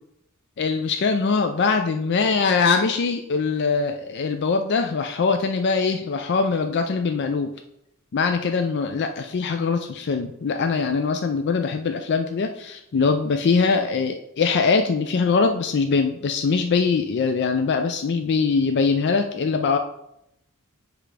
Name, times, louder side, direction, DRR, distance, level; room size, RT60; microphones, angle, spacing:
voice 1, 0.6-7.5 8.1-19.8, left 4 dB, 55° left, 6 dB, 0.4 m, -22 dB
8.0 x 3.4 x 4.9 m, 0.81 s
head